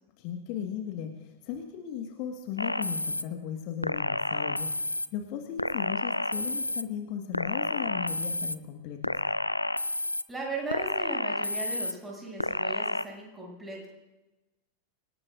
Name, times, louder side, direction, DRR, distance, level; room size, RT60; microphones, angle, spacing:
voice 1, 0.2-9.2, left 8 dB, 45° left, 4 dB, 1.7 m, -37 dB
sound 1, 2.6-3.2 3.8-5.1 5.6-6.8 7.3-8.6 9.0-10.2 10.7-11.9 12.4-13.0, left 1 dB, 85° left, 0.4 m, -30 dB
voice 2, 10.3-13.9, right 2 dB, 10° right, -2 dB, 7.3 m, -37 dB
26.0 x 18.5 x 2.6 m, 1.0 s
figure-of-eight pair, 90°, 0 cm